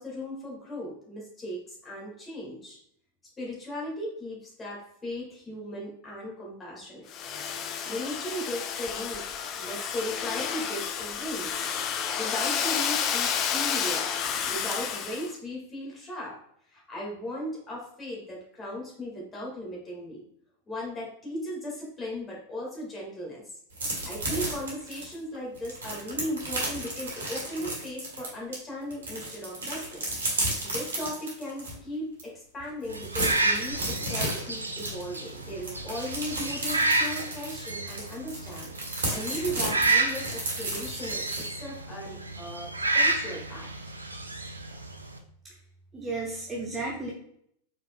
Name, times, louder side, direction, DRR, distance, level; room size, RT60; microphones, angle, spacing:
voice 1, 0.0-2.8 3.4-7.1 7.8-11.7 12.1-16.4 16.7-20.2 20.7-23.5 24.0-30.1 30.6-43.9, equal, 15° left, -3 dB, 1.8 m, -37 dB
Domestic sounds home sounds, 7.1-15.3, left 7 dB, 35° left, 0.4 m, -30 dB
sound 1, 23.7-28.6 28.9-31.7 32.2-32.3 32.6-41.5, right 2 dB, 65° right, 1.6 m, -33 dB
sound 2, 32.9-45.2, right 2 dB, 80° right, 0.4 m, -30 dB
voice 2, 45.9-47.1, right 3 dB, 20° right, -3 dB, 0.9 m, -34 dB
4.8 x 4.2 x 2.2 m, 0.69 s
figure-of-eight pair, 90°, 0 cm